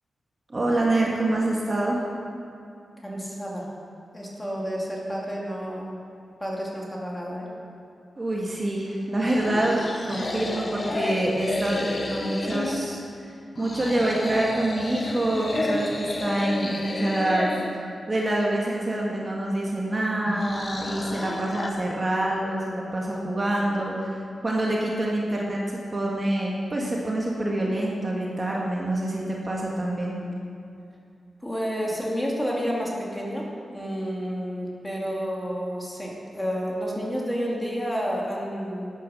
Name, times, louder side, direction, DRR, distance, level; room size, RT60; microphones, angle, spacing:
voice 1, 0.5-2.0 8.2-13.0 13.6-17.5 18.1-24.1 24.4-30.2, right 1 dB, 30° right, -3 dB, 1.9 m, -26 dB
voice 2, 3.0-3.7 4.1-6.0 6.4-7.5 31.4-33.5 33.7-38.9, equal, 10° left, -3 dB, 2.6 m, -30 dB
sound 1, 9.2-12.9 13.5-17.7 20.2-21.7, left 2 dB, 40° left, 1.3 m, -31 dB
13.5 x 9.6 x 6.6 m, 2.6 s
wide cardioid pair, 110°, 0 cm